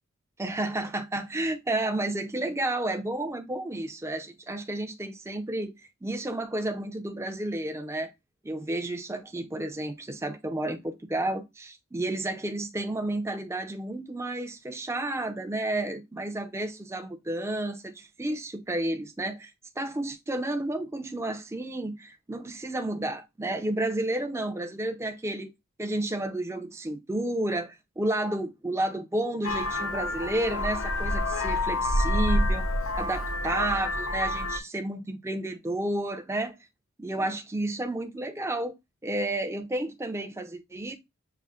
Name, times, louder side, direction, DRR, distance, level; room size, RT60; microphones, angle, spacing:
voice 1, 0.4-5.7 6.0-8.1 8.4-19.5 19.8-25.5 25.8-32.7 33.0-36.5 37.0-38.7 39.0-41.0, right 1 dB, 10° right, 0.4 m, -31 dB
Vehicle horn car horn honking, 29.4-34.6, left 1 dB, 70° left, 0.5 m, -28 dB
6.7 x 2.5 x 2.3 m
head